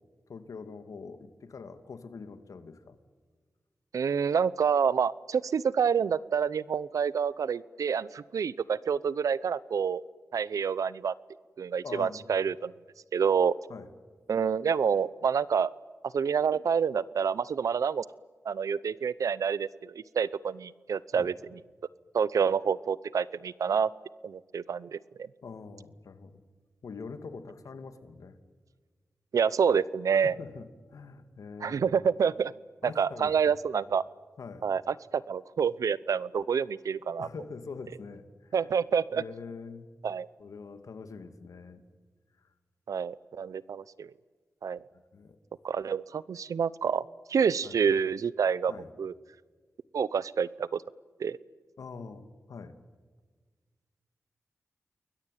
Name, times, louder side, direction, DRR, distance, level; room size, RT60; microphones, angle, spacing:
voice 1, 0.3-3.0 11.8-12.3 13.7-13.9 21.1-21.3 25.4-26.4 26.8-28.4 30.1-31.9 32.8-33.3 34.4-34.7 37.2-38.5 39.1-39.9 40.4-41.8 42.4-42.5 45.1-45.4 47.6-47.8 48.7-48.9 51.8-52.8, left 4 dB, 85° left, 9 dB, 2.4 m, -44 dB
voice 2, 3.9-10.0 10.3-11.1 11.6-12.7 13.1-13.5 14.3-15.7 16.1-18.0 18.4-21.6 22.1-23.9 24.2-25.3 29.3-30.3 31.6-32.5 32.8-34.0 34.6-37.3 38.5-39.2 40.0-40.3 42.9-44.1 44.6-44.8 45.6-47.0 47.3-48.7 49.0-49.1 49.9-50.8 51.2-51.4, right 6 dB, 90° right, 20 dB, 0.7 m, -28 dB
29.5 x 21.5 x 9.3 m, 1.4 s
wide cardioid pair, 80°, 6 cm